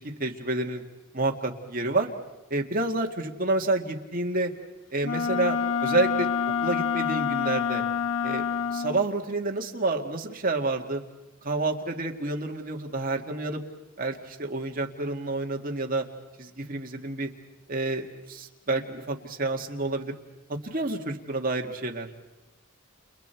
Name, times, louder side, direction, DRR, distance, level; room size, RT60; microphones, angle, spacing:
voice 1, 0.2-0.8 1.1-2.1 2.5-4.5 4.9-6.3 6.6-7.8 8.2-8.5 8.7-11.0 11.4-13.6 14.0-16.0 16.4-17.3 17.7-20.1 20.6-22.1, right 2 dB, 40° right, 2 dB, 2.0 m, -29 dB
Wind instrument woodwind instrument, 5.0-9.1, left 7 dB, 70° left, 0.9 m, -27 dB
29.5 x 29.5 x 4.6 m, 1.1 s
head